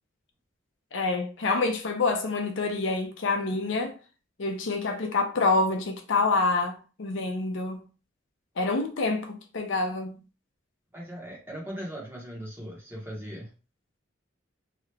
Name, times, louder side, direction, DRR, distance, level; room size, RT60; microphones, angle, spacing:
voice 1, 0.9-3.9 4.4-7.8 8.6-10.2, left 3 dB, 70° left, 0.6 m, -27 dB
voice 2, 10.9-13.5, equal, 10° right, 1.0 m, -39 dB
2.9 x 2.4 x 3.2 m
head